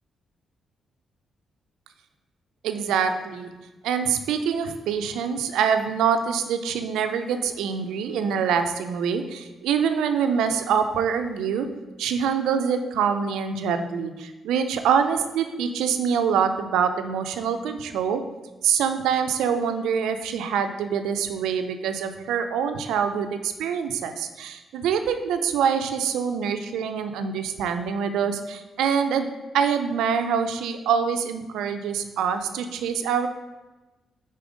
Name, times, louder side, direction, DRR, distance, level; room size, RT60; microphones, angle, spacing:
voice 1, 2.6-3.5 3.8-11.7 12.0-18.2 18.6-29.3 29.5-33.3, right 7 dB, 80° right, 8 dB, 0.4 m, -25 dB
4.9 x 4.0 x 5.1 m, 1.1 s
supercardioid pair, 50°, 0 cm